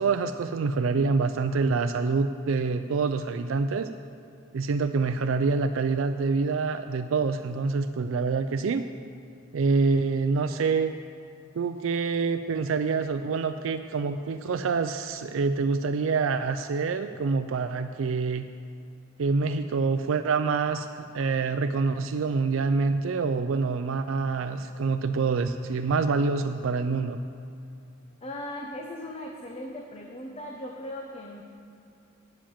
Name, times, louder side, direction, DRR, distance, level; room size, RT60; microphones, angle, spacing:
voice 1, 0.0-3.9 4.5-8.8 9.5-10.9 11.6-18.5 19.2-27.2, right 4 dB, 80° right, 8 dB, 0.4 m, -26 dB
voice 2, 28.2-31.4, left 1 dB, 30° left, 1 dB, 0.8 m, -38 dB
8.7 x 7.6 x 8.7 m, 2.5 s
head